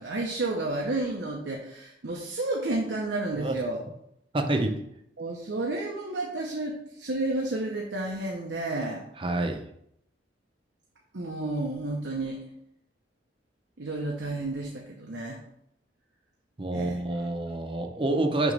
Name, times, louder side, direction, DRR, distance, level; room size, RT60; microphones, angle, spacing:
voice 1, 0.0-3.8 4.6-4.7 5.2-9.1 11.1-12.4 13.8-15.4 16.7-17.0, right 2 dB, 85° right, 0 dB, 0.8 m, -31 dB
voice 2, 4.3-4.8 9.2-9.6 16.6-18.5, right 2 dB, 30° right, 5 dB, 0.7 m, -27 dB
6.2 x 3.0 x 5.3 m, 0.74 s
head